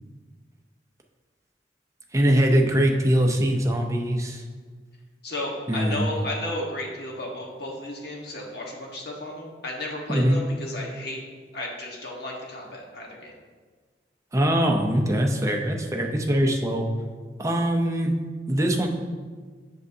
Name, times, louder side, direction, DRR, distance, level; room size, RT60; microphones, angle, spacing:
voice 1, 2.1-4.4 5.7-6.1 10.1-10.4 14.3-16.9 17.4-18.1 18.5-18.9, equal, 20° right, 2 dB, 0.6 m, -22 dB
voice 2, 5.2-11.2 11.5-13.3, left 1 dB, 65° left, -1 dB, 1.3 m, -33 dB
7.8 x 6.4 x 2.7 m, 1.5 s
head